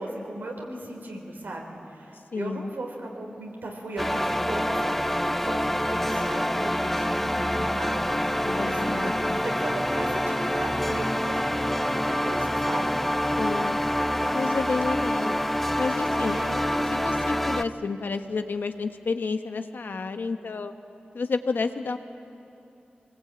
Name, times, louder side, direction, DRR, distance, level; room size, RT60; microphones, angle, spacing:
voice 1, 0.0-9.1 9.4-13.0 16.2-16.6, right 1 dB, 90° right, 0 dB, 4.3 m, -37 dB
voice 2, 2.3-2.7 8.4-9.4 13.4-13.8 14.3-15.4 15.8-16.4 16.9-20.7 21.1-22.0, left 4 dB, 80° left, 7 dB, 1.2 m, -30 dB
sound 1, 4.0-17.6, equal, 5° left, 0.7 m, -26 dB
25.5 x 20.5 x 8.9 m, 2.8 s
wide cardioid pair, 70°, 3 cm